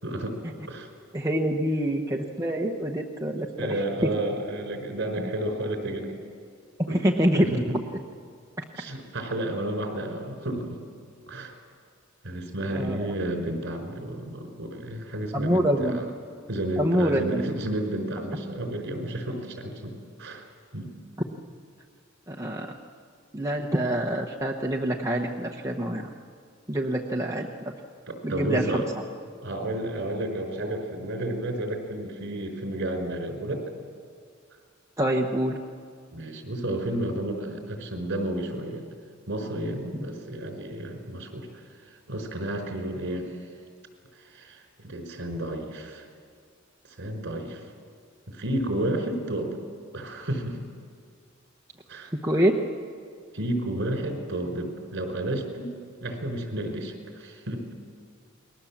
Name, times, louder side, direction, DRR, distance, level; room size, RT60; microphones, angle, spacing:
voice 1, 0.0-0.4 0.7-0.9 3.6-6.2 6.9-7.8 8.8-10.8 11.3-11.5 12.2-16.0 16.5-20.4 20.7-20.9 28.1-28.9 29.4-33.7 36.1-38.8 39.3-41.5 42.1-43.5 44.1-46.1 47.0-47.7 48.3-49.6 49.9-50.6 51.9-52.1 53.3-55.7 56.0-57.7, right 1 dB, 60° right, 4 dB, 4.7 m, -31 dB
voice 2, 1.1-3.7 6.9-7.5 12.7-13.1 15.3-16.0 16.8-17.5 22.3-22.7 23.3-26.0 26.7-27.5 28.2-28.7 35.0-35.6 52.2-52.5, right 1 dB, 15° right, 0 dB, 1.1 m, -25 dB
29.0 x 21.0 x 7.3 m, 2.1 s
head